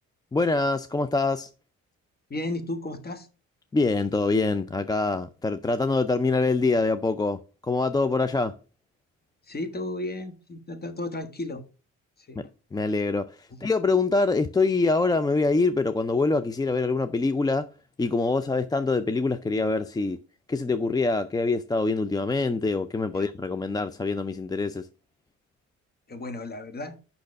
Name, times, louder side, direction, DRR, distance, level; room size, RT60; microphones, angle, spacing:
voice 1, 0.3-1.5 3.7-8.6 12.4-12.5 12.7-17.7 18.0-20.2 20.5-24.9, left 3 dB, 15° left, 0.4 m, -25 dB
voice 2, 2.3-3.3 9.4-11.6 12.2-12.4 13.5-13.6 23.1-23.2 26.1-26.9, left 2 dB, 30° left, 1.4 m, -34 dB
6.5 x 5.7 x 5.1 m
cardioid pair, 90°, 30 cm